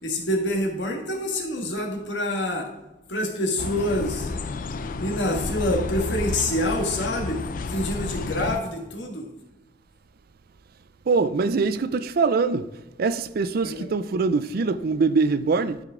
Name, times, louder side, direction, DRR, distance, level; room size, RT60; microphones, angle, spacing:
voice 1, 0.0-2.7 3.1-4.3 5.0-7.4 7.7-9.3 13.6-13.9, left 1 dB, 85° left, 1.7 m, -26 dB
sound 1, 3.6-8.6, left 3 dB, 50° left, 0.5 m, -31 dB
voice 2, 11.1-12.7 13.0-15.8, right 4 dB, 55° right, 0.4 m, -23 dB
11.5 x 5.1 x 3.7 m
head